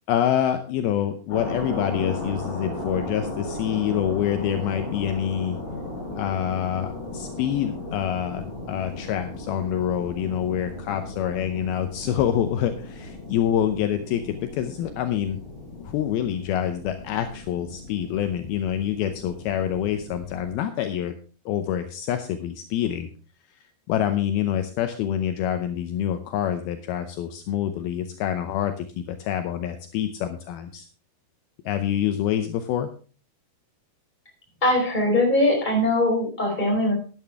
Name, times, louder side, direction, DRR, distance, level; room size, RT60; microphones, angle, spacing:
voice 1, 0.1-5.6 6.1-15.4 15.8-21.1 21.5-23.1 23.9-30.9 31.7-32.9, left 10 dB, 75° left, 8 dB, 2.5 m, -26 dB
sound 1, 1.3-20.6, left 2 dB, 50° left, 7.9 m, -36 dB
voice 2, 34.6-36.9, left 1 dB, 10° left, -1 dB, 4.4 m, -21 dB
12.5 x 10.5 x 3.6 m, 0.38 s
omnidirectional pair, 4.6 m